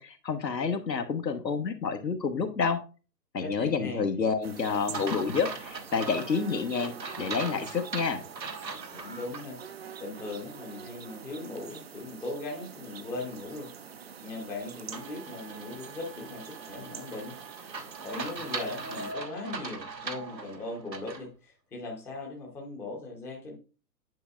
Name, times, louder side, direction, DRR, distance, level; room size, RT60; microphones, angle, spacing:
voice 1, 0.0-2.8 3.3-8.2, left 5 dB, 80° left, 6 dB, 1.3 m, -29 dB
voice 2, 3.4-4.1 8.9-9.6 10.0-13.7 14.2-17.3 18.0-23.6, left 2 dB, 5° left, -2 dB, 0.7 m, -39 dB
sound 1, 4.4-19.1, right 7 dB, 40° right, 0.5 m, -46 dB
sound 2, 4.9-9.4 9.9-10.0 14.9-21.3, right 4 dB, 90° right, 1.2 m, -40 dB
10.0 x 5.1 x 2.4 m, 0.34 s
figure-of-eight pair, 125°, 49 cm